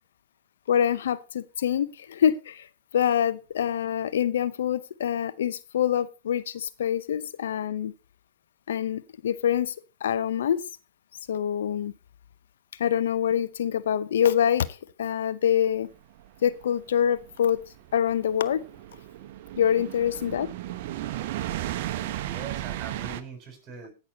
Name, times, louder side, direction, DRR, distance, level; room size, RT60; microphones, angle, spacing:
voice 1, 0.7-2.7 2.9-7.9 8.7-9.7 10.0-10.6 11.3-11.9 12.8-14.7 15.0-15.9 16.4-17.6 17.9-18.6 19.6-20.5, left 9 dB, 75° left, 0.7 m, -25 dB
sound 1, 16.2-23.2, right 13 dB, 60° right, 0.9 m, -35 dB
voice 2, 21.9-23.9, right 5 dB, 30° right, 5.6 m, -41 dB
16.5 x 6.3 x 4.1 m
hypercardioid pair, 110°, 0 cm